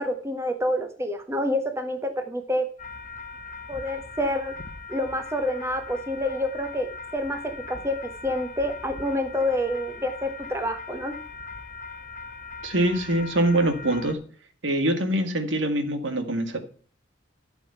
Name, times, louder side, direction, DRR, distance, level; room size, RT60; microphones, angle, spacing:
voice 1, 0.0-2.6 3.7-4.5 4.9-7.4 7.7-11.1, left 1 dB, 15° right, 1.4 m, -28 dB
sound 1, 2.8-14.1, left 4 dB, 40° left, 1.1 m, -40 dB
voice 2, 12.6-14.2 14.6-16.6, right 1 dB, 75° right, 1.9 m, -24 dB
12.5 x 7.0 x 5.7 m
head